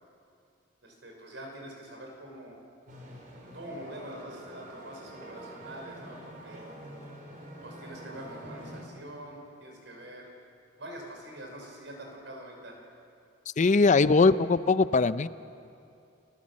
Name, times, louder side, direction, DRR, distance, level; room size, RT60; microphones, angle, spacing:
voice 1, 0.8-2.6 3.5-6.6 7.6-10.3 10.8-12.8, right 1 dB, 75° right, 0 dB, 5.6 m, -44 dB
sound 1, 2.9-8.8, right 1 dB, 50° right, 4.0 m, -46 dB
voice 2, 13.6-15.3, left 4 dB, 40° left, 15 dB, 0.5 m, -21 dB
29.5 x 15.0 x 7.5 m, 2.6 s
head